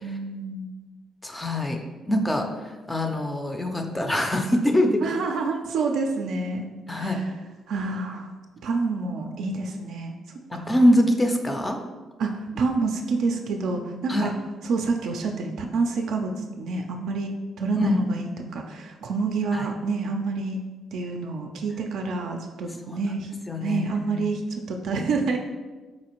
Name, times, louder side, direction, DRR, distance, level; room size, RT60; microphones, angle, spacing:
voice 1, 0.0-0.7 5.0-7.2 7.7-8.3 8.6-10.1 10.5-10.7 12.2-14.3 14.6-16.3 16.6-20.6 20.9-23.3 23.6-25.4, right 4 dB, 75° right, 3 dB, 0.3 m, -28 dB
voice 2, 1.2-1.8 2.1-2.4 2.9-5.0 6.9-7.2 10.5-11.8 14.1-14.3 17.8-18.0 19.5-19.7 22.9-23.0 23.5-24.3, left 1 dB, 15° left, 4 dB, 0.4 m, -23 dB
4.0 x 2.5 x 2.9 m, 1.3 s
cardioid pair, 90°, 0 cm